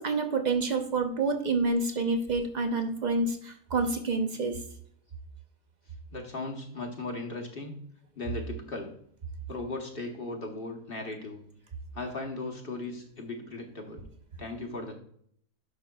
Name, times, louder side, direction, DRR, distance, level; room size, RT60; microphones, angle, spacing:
voice 1, 0.0-4.6, right 3 dB, 50° right, 5 dB, 0.5 m, -28 dB
voice 2, 6.1-7.8 8.2-8.9 9.5-11.4 11.9-14.0 14.4-14.9, left 2 dB, 40° left, 1 dB, 1.0 m, -37 dB
10.5 x 6.0 x 2.2 m, 0.65 s
omnidirectional pair, 1.7 m